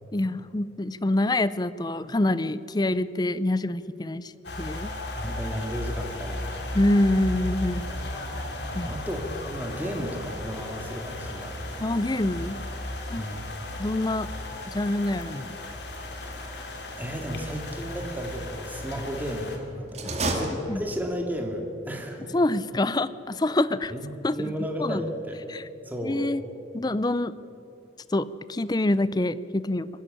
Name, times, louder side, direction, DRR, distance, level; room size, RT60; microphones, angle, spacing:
voice 1, 0.1-4.3 4.6-4.9 6.7-7.9 8.7-8.9 11.8-12.6 13.1-13.2 13.8-14.3 14.7-15.6 20.2-20.3 20.7-20.8 22.3-23.9 24.2-24.5 24.8-25.0 25.5-25.6 26.0-26.4 26.7-27.4 28.1-29.9, left 1 dB, 20° left, 16 dB, 0.5 m, -26 dB
sound 1, 4.4-19.6, left 1 dB, 60° left, 2.7 m, -35 dB
voice 2, 5.2-6.5 8.8-11.6 13.1-13.5 17.0-22.3 23.9-25.4 25.8-26.3, equal, 10° right, 2 dB, 2.3 m, -33 dB
sound 2, 19.9-21.3, right 2 dB, 35° right, 2.4 m, -30 dB
23.0 x 13.0 x 10.0 m, 2.9 s
head